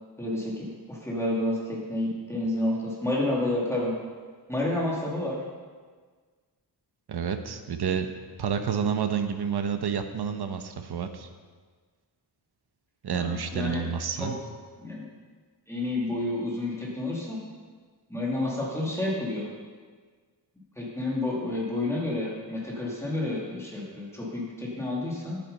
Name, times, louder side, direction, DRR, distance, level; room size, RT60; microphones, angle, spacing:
voice 1, 0.2-4.0 4.5-5.4 13.1-13.8 14.2-14.3 14.8-15.0 15.7-17.4 18.1-19.5 20.8-25.4, left 1 dB, 5° left, -5 dB, 2.5 m, -30 dB
voice 2, 7.1-8.1 8.4-11.3 13.0-14.4, right 7 dB, 65° right, 7 dB, 0.9 m, -29 dB
11.0 x 8.8 x 5.5 m, 1.5 s
wide cardioid pair, 175°, 42 cm